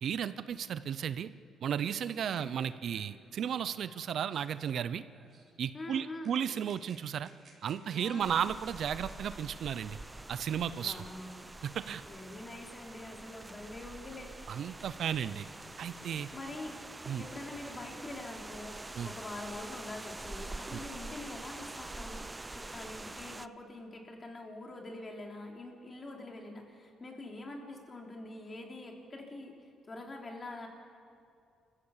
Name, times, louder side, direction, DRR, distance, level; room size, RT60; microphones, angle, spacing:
voice 1, 0.0-1.3 1.6-5.0 5.6-7.3 7.6-10.0 10.3-11.0 11.6-12.0 14.5-15.5 15.8-16.3 17.1-17.3 19.0-19.1 20.7-20.8, right 8 dB, 65° right, 14 dB, 0.6 m, -34 dB
sound 1, 1.7-4.8 5.1-5.5 6.2-9.4, right 3 dB, 50° right, 5.4 m, -60 dB
voice 2, 5.7-6.4 7.9-8.4 10.8-11.5 12.0-14.6 16.3-16.8 17.2-29.5 29.9-30.7, left 2 dB, 30° left, 1 dB, 3.6 m, -45 dB
sound 2, 8.2-23.5, right 2 dB, 15° right, 0.5 m, -46 dB
25.5 x 15.0 x 7.4 m, 2.4 s
cardioid pair, 90°, 0 cm